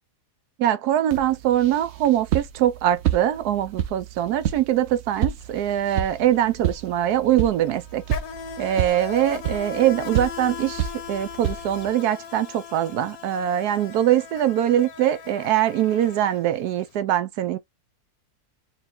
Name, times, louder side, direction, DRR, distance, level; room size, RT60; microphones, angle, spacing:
voice 1, 0.6-8.0 8.6-17.6, right 11 dB, 75° right, 1.1 m, -22 dB
sound 1, 1.1-11.9, right 10 dB, 55° right, 0.8 m, -30 dB
Insect, 5.4-5.6 5.9-16.9, left 8 dB, 65° left, 1.2 m, -38 dB
4.7 x 2.2 x 3.7 m
omnidirectional pair, 1.7 m